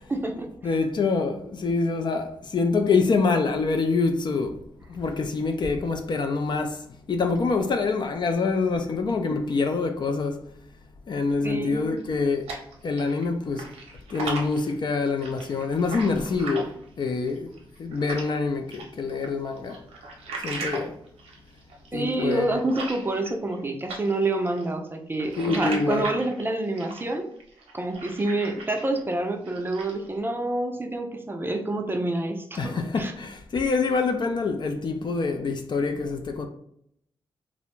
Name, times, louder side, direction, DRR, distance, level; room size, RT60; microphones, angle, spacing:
voice 1, 0.1-0.8 9.2-9.4 11.4-12.0 21.9-27.3 27.7-33.1, right 2 dB, 20° right, 0.4 m, -28 dB
voice 2, 0.6-4.6 4.9-10.4 11.1-12.4 12.8-13.7 14.1-17.5 17.8-19.8 20.4-20.9 21.9-22.6 25.4-26.1 32.6-36.5, left 4 dB, 50° left, 0.4 m, -26 dB
sound 1, 12.0-13.3 13.5-18.4 18.7-23.6 23.9-29.0 29.3-30.1, right 3 dB, 85° right, 0.6 m, -38 dB
2.4 x 2.0 x 3.0 m
cardioid pair, 60°, 10 cm